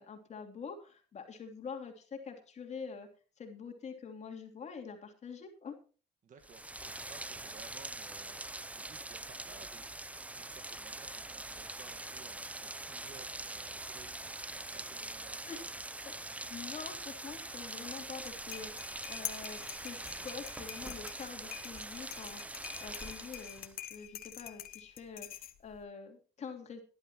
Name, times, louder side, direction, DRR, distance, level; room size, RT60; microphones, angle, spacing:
voice 1, 0.0-3.1 3.4-5.8 15.5-15.6 16.0-26.8, left 5 dB, 40° left, 4 dB, 3.1 m, -46 dB
voice 2, 6.2-9.9 10.3-15.4, right 6 dB, 50° right, 5 dB, 1.7 m, -57 dB
Rain, 6.4-23.8, right 2 dB, 10° right, 0.6 m, -43 dB
sound 1, 18.2-25.8, left 12 dB, 60° left, 1.4 m, -46 dB
18.0 x 11.5 x 3.0 m, 0.36 s
cardioid pair, 110°, 17 cm